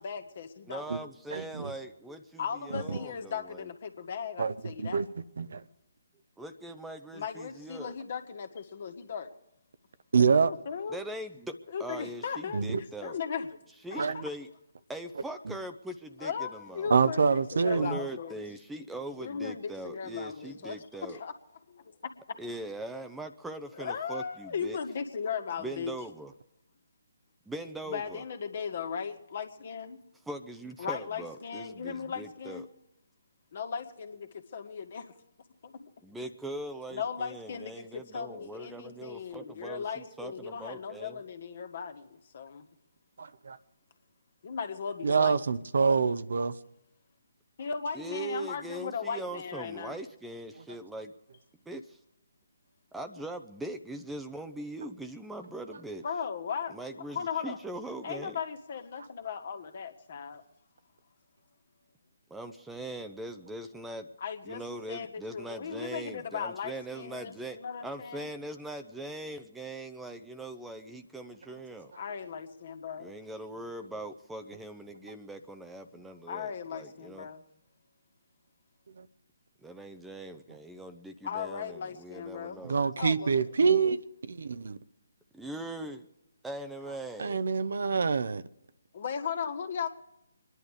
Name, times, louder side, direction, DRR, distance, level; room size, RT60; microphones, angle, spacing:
voice 1, 0.0-0.9 2.4-5.0 7.1-9.3 10.4-11.0 11.7-13.5 13.9-14.2 16.2-18.4 19.2-21.3 23.7-25.9 27.9-30.0 30.8-32.6 33.5-35.1 35.6-35.9 36.9-42.7 44.4-45.4 47.6-50.0 56.0-56.8 57.1-57.6 58.0-60.4 64.2-68.3 71.9-73.1 76.3-77.4 81.2-82.7 83.0-83.6 88.9-89.9, left 6 dB, 50° left, 1.9 m, -37 dB
voice 2, 0.6-3.7 6.4-7.9 10.9-13.2 13.8-14.5 14.9-16.9 17.7-21.2 22.4-24.8 25.6-26.3 27.5-28.2 30.3-32.7 36.0-41.2 47.9-51.1 51.7-52.0 52.9-56.0 56.7-58.4 62.3-64.1 64.5-71.9 73.0-77.3 79.6-82.8 85.3-86.1 86.4-87.4, right 1 dB, 5° right, 0.8 m, -41 dB
voice 3, 1.3-1.7 2.7-2.8 4.4-4.5 4.8-5.0 5.4-5.6 10.1-10.5 12.5-12.8 14.0-14.2 16.9-18.0 43.2-43.6 45.0-46.5 82.6-84.0 84.3-84.8 87.2-88.4, right 5 dB, 65° right, 0.8 m, -26 dB
25.5 x 11.0 x 5.0 m
figure-of-eight pair, 145°, 0 cm